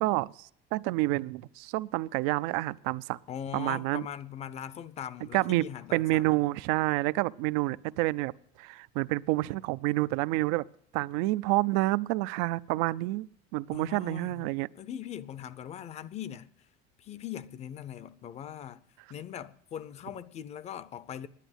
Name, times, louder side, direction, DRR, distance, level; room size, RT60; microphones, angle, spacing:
voice 1, 0.0-3.2 3.5-4.0 5.3-5.7 5.9-8.3 8.6-10.6 10.9-13.3 13.5-14.7, right 19 dB, 85° right, 0.4 m, -28 dB
voice 2, 3.3-6.4 13.7-14.5 14.7-16.5 17.0-18.8 19.1-21.3, left 10 dB, 35° left, 0.5 m, -40 dB
10.0 x 10.0 x 7.9 m
cardioid pair, 150°, 20 cm